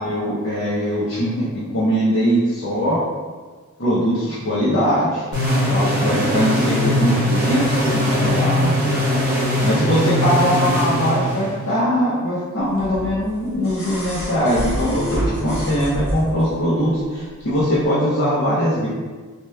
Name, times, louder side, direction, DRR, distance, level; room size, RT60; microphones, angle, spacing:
voice 1, 0.0-3.0 3.8-5.2 5.7-8.9 9.6-18.9, equal, 60° left, -10 dB, 0.7 m, -21 dB
sound 1, 5.3-11.8, equal, 50° right, 1.0 m, -20 dB
sound 2, 12.8-16.5 17.8-17.9, equal, 85° left, 1.0 m, -27 dB
2.9 x 2.3 x 3.2 m, 1.4 s
head